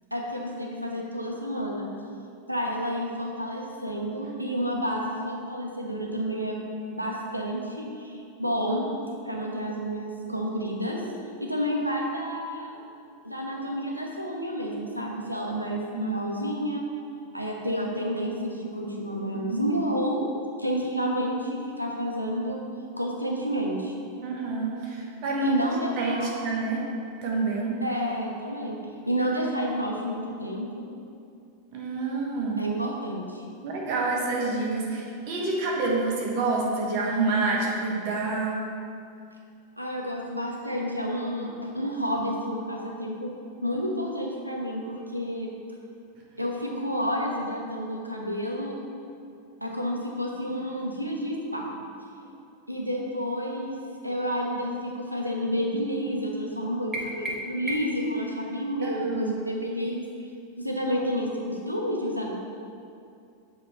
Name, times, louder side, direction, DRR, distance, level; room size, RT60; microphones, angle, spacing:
voice 1, 0.1-1.9 2.5-6.6 6.9-8.8 9.2-11.0 11.4-12.8 13.2-16.8 17.3-20.2 20.6-22.6 23.0-24.0 25.4-26.3 27.8-28.8 29.0-30.8 32.6-33.4 39.8-43.3 43.6-45.5 46.4-48.8 49.6-51.8 52.7-53.8 54.0-60.0 60.6-62.3, equal, 90° right, -1 dB, 0.7 m, -30 dB
voice 2, 19.3-19.7 24.2-25.6 25.9-26.2 26.4-26.8 27.2-27.8 31.7-32.6 33.6-38.6 58.8-59.3, right 3 dB, 45° right, -3 dB, 1.1 m, -28 dB
sound 1, 56.9-58.1, right 1 dB, 15° right, 0.7 m, -34 dB
7.3 x 3.0 x 4.3 m, 2.5 s
figure-of-eight pair, 90°, 0 cm